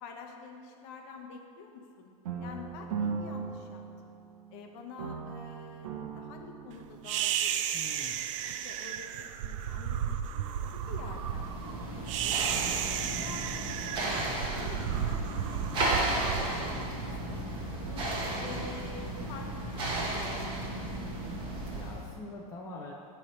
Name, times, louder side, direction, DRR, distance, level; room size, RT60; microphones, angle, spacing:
voice 1, 0.0-2.1 2.4-4.2 4.5-8.0 8.5-10.0 10.3-11.7 12.2-16.6 17.1-17.5 17.8-18.1 18.4-20.9, left 5 dB, 40° left, 3 dB, 0.8 m, -48 dB
sound 1, 2.2-4.6 5.0-7.2, right 5 dB, 75° right, 0.9 m, -38 dB
sound 2, 7.1-17.4, right 10 dB, 55° right, 0.4 m, -34 dB
voice 2, 7.7-8.2 14.1-14.5 16.5-17.6 18.5-18.6 21.7-22.9, left 3 dB, 15° left, -1 dB, 0.4 m, -45 dB
sound 3, 10.6-22.1, right 1 dB, 25° right, 1.2 m, -34 dB
8.8 x 3.3 x 5.5 m, 2.5 s
supercardioid pair, 160°, 19 cm